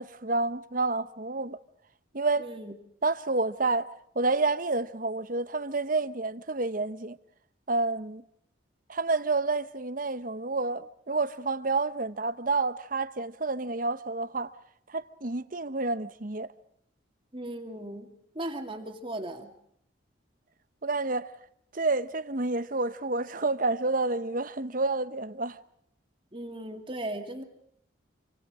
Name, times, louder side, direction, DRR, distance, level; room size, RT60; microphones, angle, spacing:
voice 1, 0.0-1.6 2.1-2.5 3.0-3.9 4.1-7.2 7.7-8.2 8.9-14.5 14.9-16.5 20.8-21.3 21.7-25.6, right 3 dB, 45° right, 1.1 m, -29 dB
voice 2, 2.4-2.7 17.3-18.1 18.4-19.5 26.3-27.4, right 1 dB, 25° right, 2.2 m, -37 dB
27.5 x 25.0 x 5.0 m
head